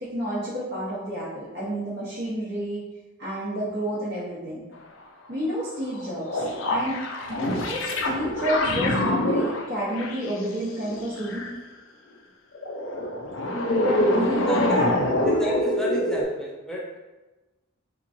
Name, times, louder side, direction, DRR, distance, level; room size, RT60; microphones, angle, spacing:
voice 1, 0.0-2.8 3.2-4.6 5.3-6.5 6.7-7.0 7.3-11.5 13.8-14.9, equal, 50° right, -10 dB, 0.8 m, -30 dB
sound 1, 5.9-11.5 12.5-16.2, left 1 dB, 65° left, 0.4 m, -26 dB
voice 2, 15.2-17.0, equal, 5° left, -3 dB, 0.4 m, -30 dB
3.5 x 2.9 x 2.5 m, 1.1 s
head